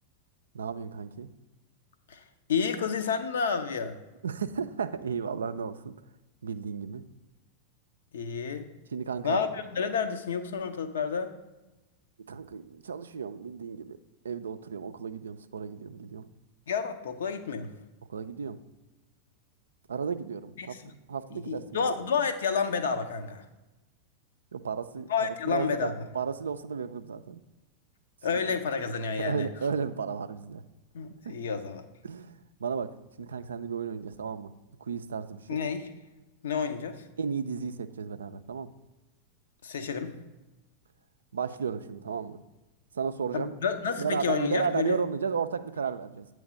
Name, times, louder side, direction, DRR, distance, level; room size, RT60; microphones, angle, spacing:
voice 1, 0.5-1.3 4.2-5.9 6.4-7.0 8.9-9.4 12.3-14.0 14.2-16.3 18.1-18.6 19.9-20.8 21.1-21.9 24.5-25.1 25.5-27.4 29.2-30.6 31.2-31.4 32.0-34.5 34.8-35.6 37.2-38.7 41.3-42.4 42.9-43.5 44.0-46.3, right 6 dB, 70° right, 11 dB, 0.3 m, -33 dB
voice 2, 2.5-4.0 8.1-8.7 9.2-11.3 16.7-17.7 20.6-20.9 21.3-23.4 25.1-26.0 28.2-29.5 30.9-31.8 35.5-35.9 36.4-37.0 39.6-40.1 43.3-45.0, left 6 dB, 65° left, 8 dB, 0.5 m, -30 dB
8.6 x 3.2 x 4.9 m, 1.1 s
figure-of-eight pair, 90°, 0 cm